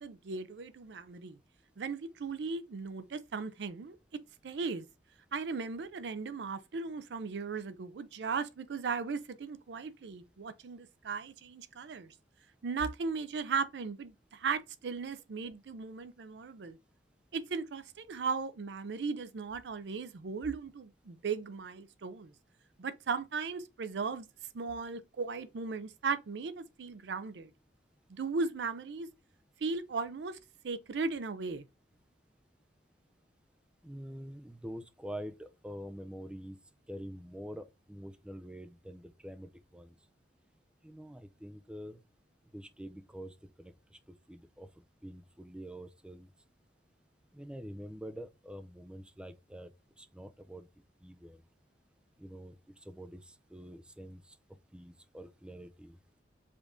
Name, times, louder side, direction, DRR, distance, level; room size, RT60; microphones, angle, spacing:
voice 1, 0.0-1.4 1.8-4.0 4.4-4.8 5.3-12.1 12.6-16.8 17.3-22.3 22.8-24.3 24.5-27.5 28.1-29.1 29.6-30.4 30.6-31.6, right 4 dB, 70° right, 0.5 m, -37 dB
voice 2, 33.8-36.6 36.9-39.9 40.8-42.0 42.5-43.7 44.3-44.7 45.0-46.3 47.3-49.7 50.0-50.7 51.0-51.4 52.2-52.5 52.9-53.2 53.5-54.2 54.7-56.0, equal, 5° right, 0.4 m, -46 dB
5.0 x 2.6 x 3.5 m
head